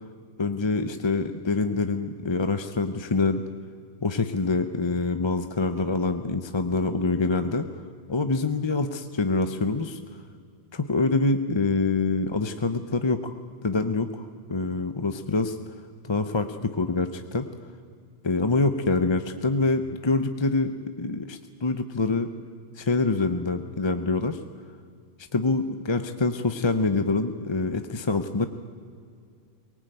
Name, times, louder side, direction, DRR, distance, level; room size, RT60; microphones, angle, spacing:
voice 1, 0.4-3.4 4.0-7.8 8.1-10.0 10.7-13.3 13.6-15.6 16.0-17.5 18.2-22.3 22.8-24.4 25.3-28.5, left 3 dB, 25° left, 8 dB, 0.6 m, -25 dB
23.0 x 19.5 x 9.1 m, 2.3 s
omnidirectional pair, 1.4 m